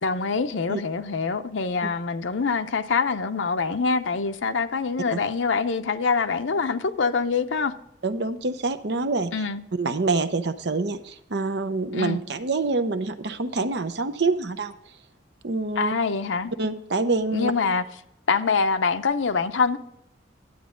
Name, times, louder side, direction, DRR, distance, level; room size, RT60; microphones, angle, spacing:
voice 1, 0.0-7.7 9.3-9.6 11.9-12.2 15.8-16.5 17.3-17.8 18.3-19.8, left 5 dB, 85° left, 0.7 m, -25 dB
voice 2, 8.0-9.3 9.8-14.7 15.4-15.9 16.6-17.5, right 3 dB, 65° right, 0.7 m, -26 dB
11.0 x 8.3 x 3.7 m
head